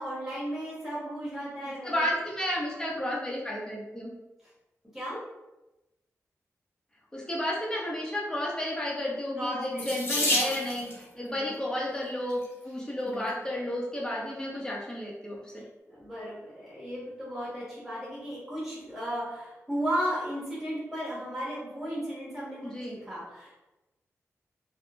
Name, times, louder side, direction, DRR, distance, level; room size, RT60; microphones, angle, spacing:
voice 1, 0.0-1.9 4.9-5.2 9.4-10.6 11.1-11.5 13.0-13.3 15.9-23.6, equal, 5° right, -9 dB, 1.2 m, -35 dB
voice 2, 1.8-4.1 7.1-15.6 22.6-23.0, left 1 dB, 15° left, -4 dB, 0.6 m, -32 dB
Water tap faucet / Sink (filling or washing), 9.8-11.0 12.0-12.4 13.1-13.2 13.6-13.7, left 1 dB, 50° left, 1.0 m, -29 dB
2.5 x 2.0 x 3.0 m, 0.98 s
wide cardioid pair, 115°, 5 cm